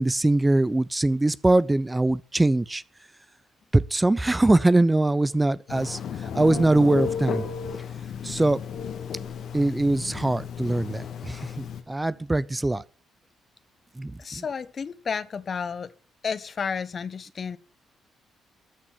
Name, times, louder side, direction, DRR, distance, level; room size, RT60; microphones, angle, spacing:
voice 1, 0.0-2.8 3.7-6.0 6.3-7.4 8.2-8.6 9.5-12.8 14.0-14.1, right 2 dB, 20° right, 0.6 m, -22 dB
Telephone, 5.7-11.8, left 7 dB, 65° left, 1.7 m, -33 dB
voice 2, 14.2-15.9 16.2-17.6, left 6 dB, 50° left, 1.0 m, -32 dB
13.5 x 6.1 x 7.4 m
hypercardioid pair, 45°, 0 cm